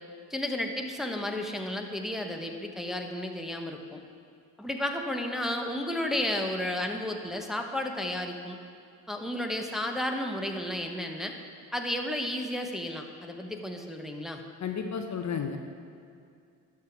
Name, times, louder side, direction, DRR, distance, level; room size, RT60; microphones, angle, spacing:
voice 1, 0.3-4.0 4.6-8.6 9.1-11.3 11.7-14.4, left 1 dB, ahead, 2 dB, 1.0 m, -32 dB
voice 2, 14.6-15.6, left 6 dB, 35° left, 5 dB, 0.8 m, -32 dB
12.0 x 6.1 x 4.7 m, 2.4 s
hypercardioid pair, 55°, 45 cm